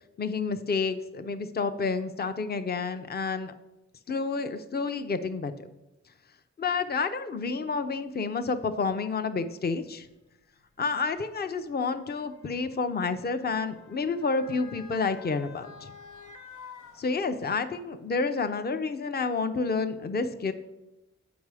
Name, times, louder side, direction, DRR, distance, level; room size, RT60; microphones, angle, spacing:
voice 1, 0.2-3.5 4.1-5.5 6.6-10.1 10.8-15.9 17.0-20.5, left 4 dB, 35° left, 9 dB, 0.5 m, -29 dB
Motor vehicle (road) / Siren, 7.7-7.8 8.8-9.0 10.1-17.7 18.1-18.2, left 5 dB, 85° left, 0.8 m, -51 dB
7.1 x 4.7 x 4.8 m, 0.95 s
cardioid pair, 45°, 29 cm